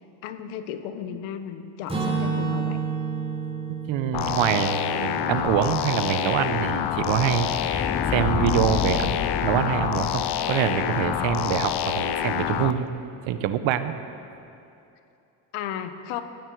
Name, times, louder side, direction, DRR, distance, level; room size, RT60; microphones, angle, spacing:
voice 1, 0.2-2.8 15.5-16.2, left 9 dB, 80° left, 9 dB, 1.2 m, -34 dB
Acoustic guitar / Strum, 1.9-5.8, right 5 dB, 10° right, 3.8 m, -30 dB
voice 2, 3.9-12.9 13.3-13.9, right 10 dB, 70° right, 11 dB, 1.1 m, -25 dB
sound 1, 4.1-12.7, left 10 dB, 55° left, 0.8 m, -27 dB
sound 2, 5.6-12.5, left 6 dB, 20° left, 0.4 m, -32 dB
19.0 x 15.5 x 4.8 m, 2.7 s
supercardioid pair, 85°, 48 cm